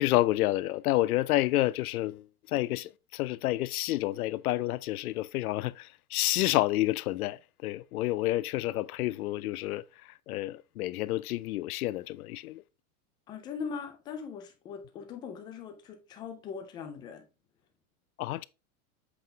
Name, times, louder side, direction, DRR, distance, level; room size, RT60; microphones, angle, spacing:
voice 1, 0.0-9.8 10.3-12.6 18.2-18.4, left 16 dB, 75° left, 0.6 m, -29 dB
voice 2, 13.3-17.2, left 6 dB, 10° left, 0.3 m, -40 dB
7.9 x 3.8 x 3.3 m
supercardioid pair, 150°, 45 cm